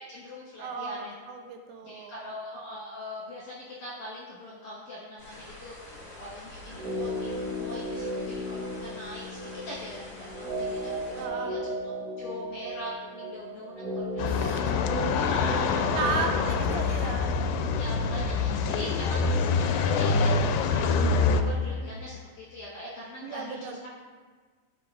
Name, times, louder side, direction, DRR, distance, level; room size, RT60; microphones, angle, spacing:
voice 1, 0.1-1.1 1.8-9.4 9.7-10.9 11.2-11.6 12.2-15.9 16.3-16.4 17.7-23.9, left 1 dB, 70° left, -7 dB, 2.0 m, -41 dB
voice 2, 0.6-2.3 11.2-11.6 14.1-14.6 15.9-17.9 23.2-23.8, right 5 dB, 85° right, 4 dB, 2.9 m, -35 dB
sound 1, 5.2-11.3, left 2 dB, 35° left, 0.8 m, -46 dB
sound 2, 6.7-18.8 19.1-19.2, equal, 55° right, 2.7 m, -36 dB
sound 3, 14.2-21.4, left 4 dB, 85° left, 2.4 m, -25 dB
14.0 x 5.3 x 2.4 m, 1.5 s
omnidirectional pair, 5.1 m